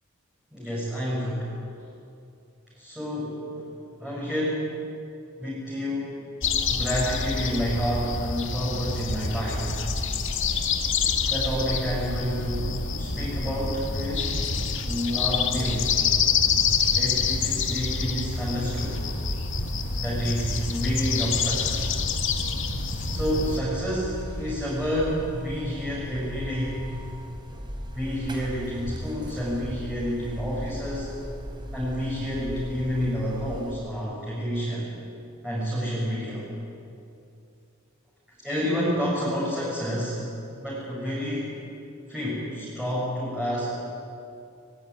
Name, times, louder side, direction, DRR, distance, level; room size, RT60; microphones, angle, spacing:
voice 1, 0.5-1.5 2.8-3.7 4.0-4.7 5.4-6.1 6.7-9.7 11.2-14.6 14.8-15.9 17.0-19.0 19.9-21.9 23.1-26.8 27.9-31.1 31.7-34.9 35.4-36.5 38.4-40.2 40.6-41.6 42.1-43.7, equal, 5° right, -8 dB, 7.2 m, -29 dB
sound 1, 6.4-23.6, left 5 dB, 65° left, 2.2 m, -27 dB
Buzz, 18.7-33.7, equal, 20° right, 4.6 m, -37 dB
25.0 x 22.0 x 9.8 m, 2.6 s
head